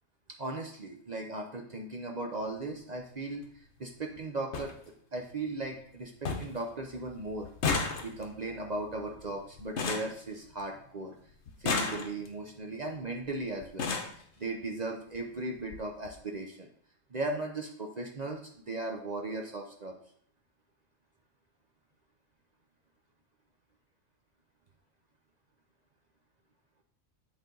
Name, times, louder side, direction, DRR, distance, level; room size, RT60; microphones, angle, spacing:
voice 1, 0.4-4.7 5.1-7.5 8.0-11.1 11.6-13.9 14.4-16.7 17.1-19.9, right 2 dB, 40° right, 1 dB, 0.6 m, -37 dB
sound 1, 2.4-2.6 3.8-3.9 4.2-4.3 4.5-4.7 5.2-5.7 5.9-6.0 6.2-6.6 6.9-10.9 11.5-12.4 13.2-13.3 13.6-14.2 15.1-15.2 15.6-15.8 16.0-16.2, left 4 dB, 60° left, 1.1 m, -34 dB
8.1 x 4.3 x 3.8 m, 0.63 s
omnidirectional pair, 1.4 m